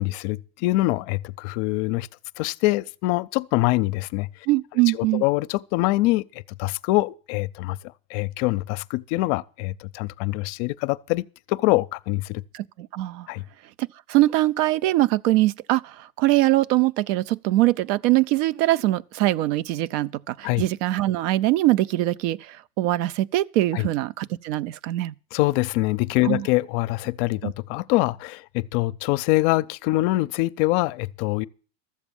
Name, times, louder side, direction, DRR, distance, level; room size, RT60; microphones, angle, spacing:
voice 1, 0.0-2.1 2.4-4.3 4.9-6.3 6.6-7.8 8.1-12.4 13.3-13.4 20.4-20.6 23.7-23.9 25.3-31.5, left 19 dB, 60° left, 0.5 m, -24 dB
voice 2, 4.5-5.2 12.5-13.3 13.8-25.1 26.2-26.5 27.4-27.5, right 17 dB, 70° right, 0.5 m, -22 dB
13.5 x 7.2 x 7.0 m
supercardioid pair, 125°, 39 cm